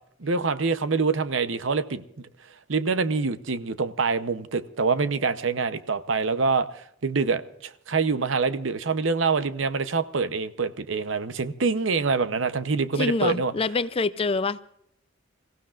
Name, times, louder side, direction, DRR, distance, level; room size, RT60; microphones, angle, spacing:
voice 1, 0.2-2.3 2.7-13.5, right 4 dB, 70° right, 0.8 m, -25 dB
voice 2, 13.0-14.6, left 3 dB, 30° left, 0.5 m, -26 dB
27.5 x 15.5 x 2.5 m
head